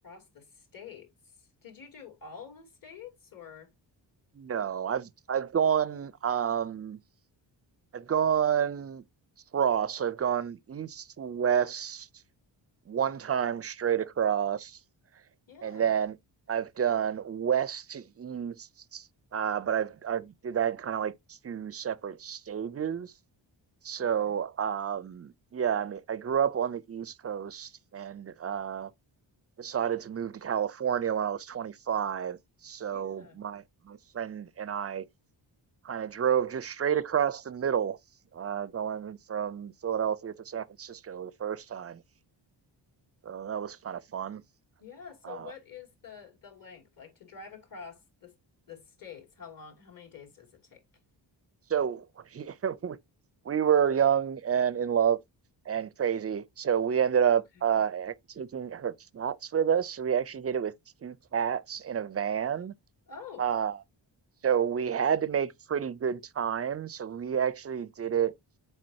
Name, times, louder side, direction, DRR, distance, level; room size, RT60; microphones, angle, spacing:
voice 1, 0.0-3.7 15.5-15.9 24.0-24.4 32.9-33.4 44.8-48.4 48.7-50.8 63.1-63.5, left 6 dB, 50° left, 2.7 m, -48 dB
voice 2, 4.4-7.0 7.9-9.0 9.5-12.1 12.9-14.8 15.6-16.2 16.5-19.1 19.3-23.1 23.8-28.9 29.6-35.1 35.8-38.0 38.3-42.0 43.2-44.4 45.2-45.5 51.7-52.1 52.3-53.0 53.5-55.2 55.7-60.7 61.0-62.7 63.4-63.8 64.4-68.3, right 8 dB, 35° right, 0.4 m, -29 dB
7.5 x 4.8 x 2.7 m
wide cardioid pair, 150°, 44 cm